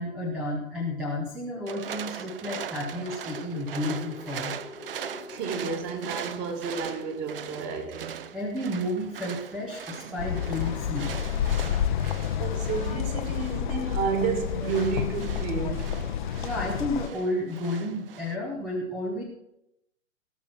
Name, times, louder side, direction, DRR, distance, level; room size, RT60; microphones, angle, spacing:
voice 1, 0.0-4.5 8.3-11.2 14.6-14.7 16.4-19.2, left 1 dB, ahead, 0.5 m, -32 dB
sound 1, 1.7-18.4, right 8 dB, 45° right, 0.7 m, -41 dB
sound 2, 3.1-10.4, left 3 dB, 90° left, 2.1 m, -48 dB
voice 2, 5.3-8.3 10.0-10.1 12.4-16.0, right 5 dB, 25° right, 1.8 m, -31 dB
sound 3, 10.2-17.1, left 9 dB, 35° left, 0.7 m, -29 dB
17.5 x 6.1 x 5.9 m
figure-of-eight pair, 120°, 40 cm